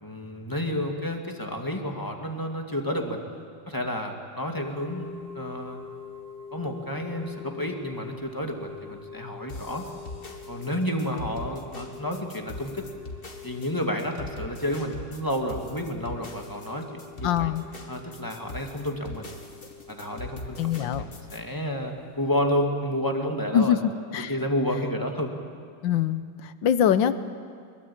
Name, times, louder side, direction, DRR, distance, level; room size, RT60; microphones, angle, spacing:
voice 1, 0.0-3.2 3.7-5.8 6.5-9.8 10.5-12.9 13.4-17.5 17.9-19.3 19.9-20.9 21.3-23.8 24.3-25.3, equal, 10° left, 2 dB, 2.1 m, -30 dB
sound 1, 4.5-22.3, left 6 dB, 25° right, 4.9 m, -45 dB
sound 2, 9.5-21.4, left 1 dB, 30° left, 2.0 m, -41 dB
voice 2, 17.2-17.6 20.6-21.0 23.5-24.3 25.8-27.2, left 9 dB, 80° left, 13 dB, 1.6 m, -24 dB
24.0 x 22.0 x 8.8 m, 2.1 s
omnidirectional pair, 2.1 m